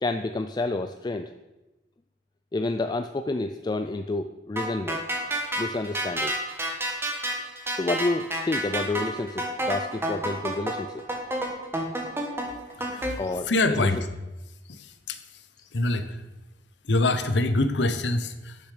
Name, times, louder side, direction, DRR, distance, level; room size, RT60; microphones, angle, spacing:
voice 1, 0.0-1.3 2.5-5.0 5.6-6.4 7.7-11.0 13.2-13.9, left 2 dB, 25° left, 8 dB, 0.4 m, -29 dB
sound 1, 4.6-13.1, right 1 dB, 15° right, 1.5 m, -30 dB
voice 2, 12.9-13.2 13.4-14.1 14.7-15.2 15.7-16.2 16.8-18.6, left 2 dB, 75° left, 10 dB, 0.9 m, -25 dB
12.0 x 7.0 x 5.0 m, 1.0 s
head